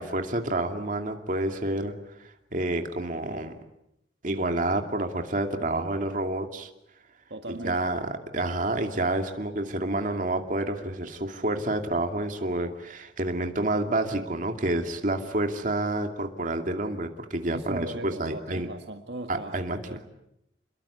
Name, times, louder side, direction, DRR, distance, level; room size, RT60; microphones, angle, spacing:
voice 1, 0.0-1.9 2.2-3.5 4.2-6.7 7.5-8.0 8.3-18.7 19.3-19.8, right 1 dB, 50° right, 5 dB, 2.5 m, -29 dB
voice 2, 7.3-7.9 17.5-20.1, right 2 dB, 70° right, 5 dB, 1.9 m, -39 dB
28.5 x 22.0 x 8.2 m, 0.83 s
head